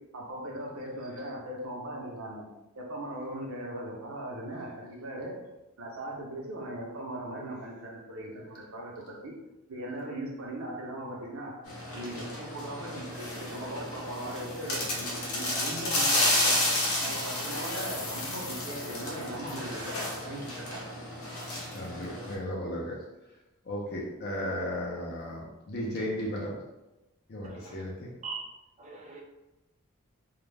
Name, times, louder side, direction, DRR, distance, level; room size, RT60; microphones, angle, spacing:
voice 1, 0.1-2.4 2.7-5.3 5.8-9.3 9.7-11.5 11.9-16.6 17.0-19.9 20.2-20.9, right 1 dB, 70° right, -2 dB, 0.7 m, -39 dB
sound 1, 11.7-22.3, left 1 dB, 85° left, 0.7 m, -31 dB
voice 2, 21.7-23.0 23.7-26.6 27.3-28.1, left 1 dB, 45° left, -3 dB, 0.4 m, -35 dB
voice 3, 27.4-27.8 28.2-28.5 28.8-29.2, right 4 dB, 30° right, 1 dB, 0.3 m, -41 dB
2.3 x 2.0 x 3.2 m, 0.97 s
head